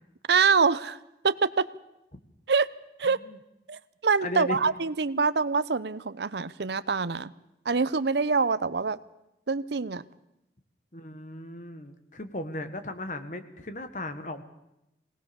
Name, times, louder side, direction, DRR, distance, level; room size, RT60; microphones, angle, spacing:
voice 1, 0.3-1.0 1.2-1.7 2.5-2.7 3.0-3.2 3.7-7.3 7.6-9.0 9.5-10.0, right 5 dB, 75° right, 16 dB, 0.7 m, -25 dB
voice 2, 3.0-3.4 4.2-4.6 10.9-14.4, left 2 dB, 45° left, 9 dB, 1.5 m, -36 dB
21.0 x 18.5 x 7.0 m, 0.88 s
head